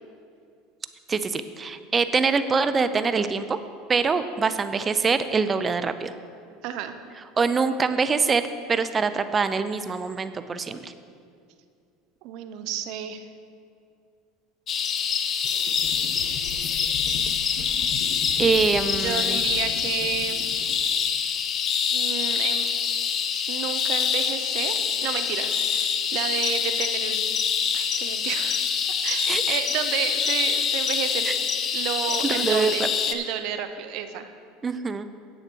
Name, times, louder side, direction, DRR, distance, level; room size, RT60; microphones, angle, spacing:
voice 1, 1.1-3.6 3.9-6.1 7.4-10.9 18.4-19.4 29.3-29.6 31.2-31.4 32.2-32.9 34.6-35.0, right 5 dB, 25° right, 11 dB, 0.6 m, -24 dB
voice 2, 6.6-7.0 12.2-13.3 18.9-20.4 21.9-22.7 23.5-27.2 27.7-28.6 29.0-31.3 31.7-34.3, right 9 dB, 65° right, 9 dB, 0.8 m, -31 dB
sound 1, 14.7-33.1, left 7 dB, 40° left, 0.7 m, -25 dB
sound 2, 15.4-20.8, left 4 dB, 65° left, 1.2 m, -39 dB
9.9 x 8.1 x 4.6 m, 2.3 s
hypercardioid pair, 95°, 0 cm